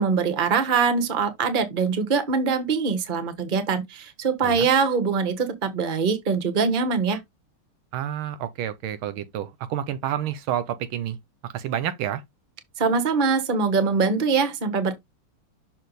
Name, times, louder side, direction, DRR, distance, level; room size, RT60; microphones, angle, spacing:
voice 1, 0.0-7.2 12.8-15.0, right 5 dB, 30° right, 1.0 m, -23 dB
voice 2, 7.9-11.2 11.5-12.2, right 10 dB, 75° right, 1.4 m, -29 dB
6.5 x 4.0 x 4.0 m
omnidirectional pair, 2.4 m